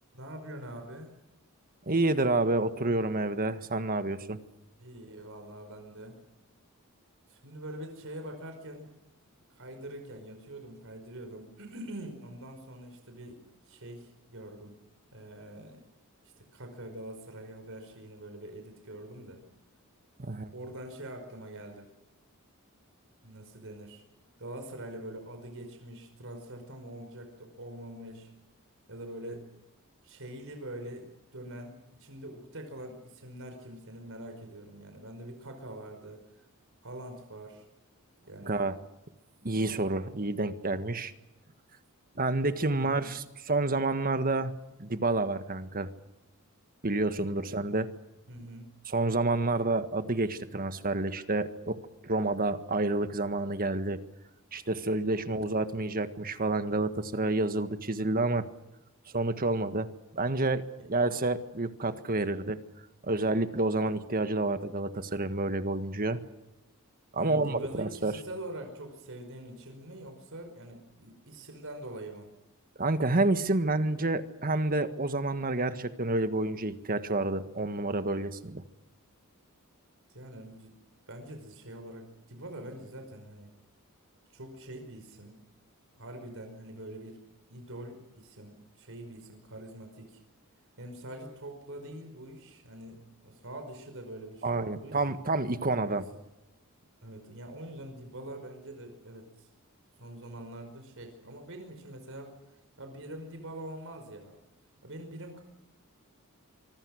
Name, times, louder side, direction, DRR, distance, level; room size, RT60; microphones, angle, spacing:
voice 1, 0.1-1.1 4.8-6.2 7.3-8.9 9.5-14.7 15.1-15.9 16.2-19.4 20.5-21.9 23.2-24.0 24.4-28.3 28.9-29.5 30.0-36.5 36.8-37.7 38.3-38.6 42.8-43.1 47.4-47.6 48.3-48.7 55.2-55.3 60.8-61.2 67.2-72.3 80.1-80.7 81.1-83.5 84.3-85.4 86.0-87.2 87.5-90.2 90.8-95.1 95.6-96.0 97.0-99.5 100.0-102.3 102.8-104.3 104.8-105.4, right 1 dB, 60° right, 5 dB, 5.2 m, -44 dB
voice 2, 1.8-4.4 20.2-20.5 38.4-38.8 39.4-41.1 42.2-45.9 46.8-47.9 48.9-54.0 54.5-58.5 59.1-62.6 63.0-66.2 67.1-68.2 72.8-78.6 94.4-96.0, right 2 dB, 40° right, 10 dB, 1.6 m, -29 dB
26.0 x 25.0 x 6.5 m, 0.94 s
head